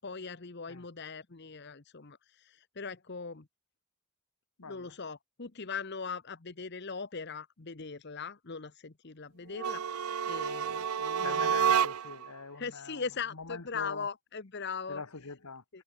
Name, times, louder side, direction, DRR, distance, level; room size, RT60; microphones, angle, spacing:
voice 1, 0.0-3.5 4.7-11.7 12.5-15.0 15.7-15.8, left 5 dB, 50° left, 1.0 m, -40 dB
voice 2, 4.6-4.9 11.2-13.0 13.3-14.1 14.9-15.6, left 4 dB, 80° left, 1.5 m, -43 dB
sound 1, 9.5-12.3, right 7 dB, 80° right, 0.6 m, -29 dB
head